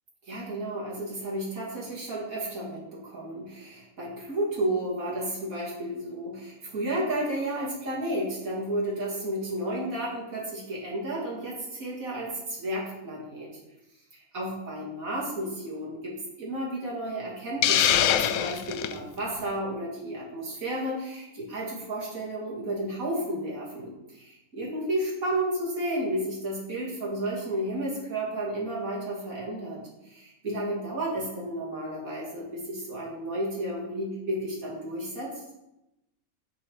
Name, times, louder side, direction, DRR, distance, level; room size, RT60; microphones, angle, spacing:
voice 1, 0.2-13.5 14.1-35.4, right 1 dB, 65° right, -6 dB, 3.0 m, -32 dB
Hiss, 17.6-19.0, left 10 dB, 75° left, 1.0 m, -23 dB
10.5 x 5.5 x 4.9 m, 0.94 s
omnidirectional pair, 1.5 m